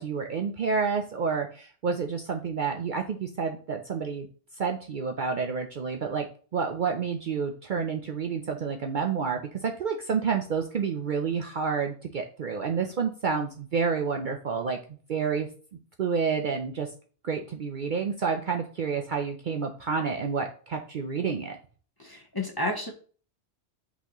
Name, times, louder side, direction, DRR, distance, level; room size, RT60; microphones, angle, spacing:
voice 1, 0.0-4.3 4.6-6.3 6.5-14.8 15.1-15.5 16.0-16.9 17.2-21.6, right 5 dB, 55° right, 3 dB, 0.6 m, -29 dB
voice 2, 22.0-22.9, left 1 dB, 20° left, 2 dB, 0.9 m, -31 dB
8.0 x 4.1 x 3.0 m, 0.42 s
omnidirectional pair, 1.2 m